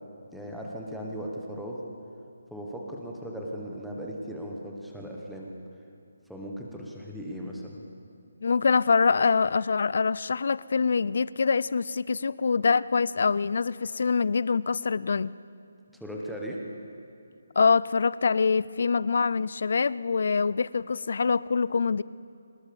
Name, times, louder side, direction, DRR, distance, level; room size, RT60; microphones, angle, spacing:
voice 1, 0.3-1.8 2.5-5.5 6.3-7.9 16.0-16.6, equal, ahead, -3 dB, 1.2 m, -37 dB
voice 2, 8.4-15.4 17.6-22.0, left 5 dB, 45° left, 20 dB, 0.4 m, -24 dB
23.5 x 19.5 x 7.0 m, 2.5 s
hypercardioid pair, 180°, 0 cm